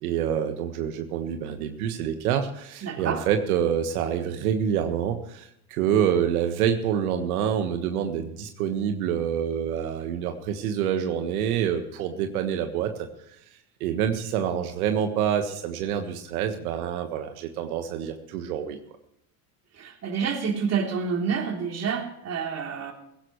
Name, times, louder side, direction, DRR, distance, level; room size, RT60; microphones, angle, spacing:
voice 1, 0.0-12.9 13.8-18.8, right 9 dB, 90° right, 6 dB, 1.5 m, -27 dB
voice 2, 2.8-3.2 19.8-22.9, right 6 dB, 35° right, 2 dB, 3.4 m, -28 dB
16.5 x 16.0 x 3.2 m, 0.78 s
supercardioid pair, 105°, 42 cm